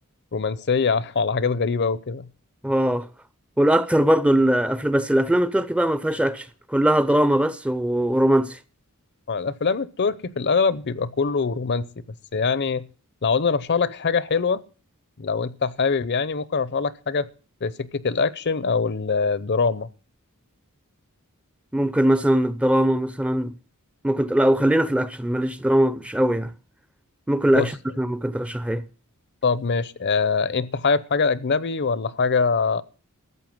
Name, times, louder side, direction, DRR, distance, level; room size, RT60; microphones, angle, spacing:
voice 1, 0.3-2.3 9.3-11.9 12.3-12.8 13.2-14.6 15.2-17.3 17.6-19.9 27.5-27.7 29.4-32.8, left 5 dB, 50° left, 0.7 m, -23 dB
voice 2, 2.6-3.1 3.6-8.6 21.7-23.5 24.0-26.5 27.3-28.8, right 1 dB, 5° right, 0.6 m, -21 dB
14.0 x 7.9 x 7.8 m
head